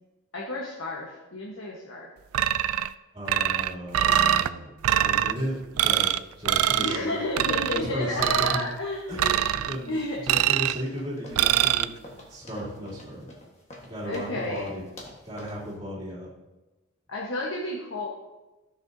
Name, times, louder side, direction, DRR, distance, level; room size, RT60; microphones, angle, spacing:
voice 1, 0.3-2.1 6.8-9.4 9.9-10.2 14.0-14.7 17.1-18.1, left 1 dB, 70° left, -3 dB, 1.3 m, -31 dB
sound 1, 2.3-2.9 3.3-4.5 4.8-5.3 5.8-6.2 6.5-7.0 7.4-7.8 8.2-8.6 9.2-9.8 10.3-10.8 11.4-11.8, right 11 dB, 85° right, 0.3 m, -23 dB
voice 2, 3.1-4.7 5.0-7.1 7.7-8.7 9.1-9.2 9.5-9.9 10.2-13.3 13.9-14.8 15.2-16.3, equal, 20° right, -6 dB, 3.0 m, -35 dB
sound 2, 10.8-15.7, left 1 dB, 30° left, 1.5 m, -48 dB
13.5 x 6.5 x 2.8 m, 1.1 s
head